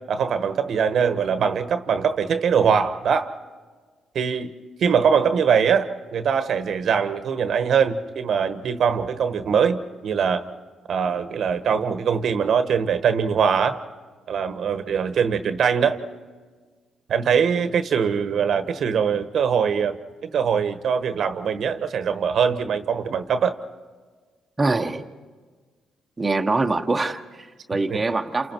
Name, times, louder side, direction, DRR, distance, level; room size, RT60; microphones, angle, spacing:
voice 1, 0.1-3.3 4.1-4.5 4.8-10.4 10.9-13.8 14.3-16.0 17.1-23.5 27.9-28.0, right 7 dB, 60° right, 1.3 m, -22 dB
voice 2, 24.6-25.1 26.2-28.5, right 3 dB, 20° right, 1.3 m, -24 dB
29.5 x 28.0 x 4.6 m
cardioid pair, 90°, 0 cm